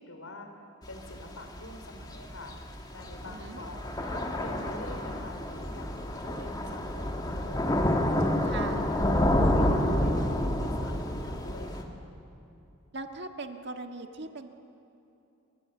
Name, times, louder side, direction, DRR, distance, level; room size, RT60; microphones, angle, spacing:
voice 1, 0.0-12.0, left 2 dB, 75° left, 5 dB, 4.0 m, -46 dB
Thunder / Rain, 0.8-11.8, left 1 dB, 20° left, 2.1 m, -29 dB
voice 2, 3.3-3.6 8.5-8.9 12.9-14.5, right 3 dB, 55° right, 5 dB, 1.7 m, -39 dB
28.5 x 24.0 x 7.8 m, 2.8 s
head